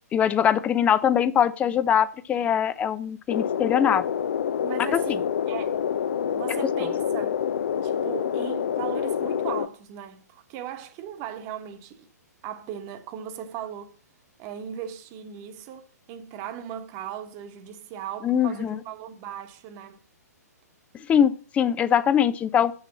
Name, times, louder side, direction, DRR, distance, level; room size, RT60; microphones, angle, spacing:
voice 1, 0.1-4.0 4.9-5.0 18.2-18.8 21.1-22.7, left 8 dB, 15° left, 0.5 m, -22 dB
sound 1, 3.3-9.7, left 8 dB, 55° left, 0.6 m, -27 dB
voice 2, 4.6-5.8 6.3-7.3 7.8-12.1 12.4-14.0 14.4-20.0, right 9 dB, 30° right, 1.2 m, -38 dB
7.3 x 6.4 x 7.4 m
figure-of-eight pair, 120°, 9 cm